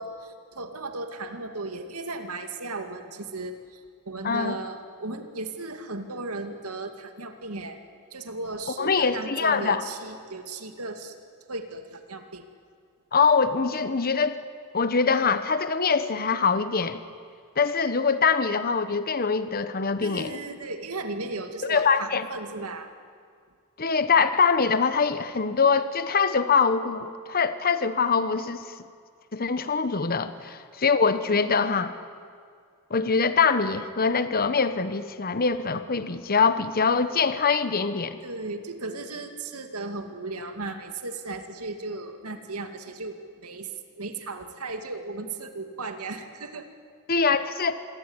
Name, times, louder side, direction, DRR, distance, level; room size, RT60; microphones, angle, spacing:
voice 1, 0.0-3.8 4.1-7.8 8.1-11.2 11.5-12.4 20.0-22.9 30.2-30.3 38.2-43.7 44.0-46.7, right 2 dB, 90° right, 6 dB, 2.3 m, -36 dB
voice 2, 4.2-4.6 8.8-9.8 13.1-14.4 14.7-17.0 17.6-20.4 21.7-22.3 23.8-28.7 29.3-31.9 32.9-38.2 47.1-47.8, left 5 dB, 45° left, 11 dB, 1.1 m, -23 dB
27.0 x 22.5 x 9.7 m, 2.1 s
head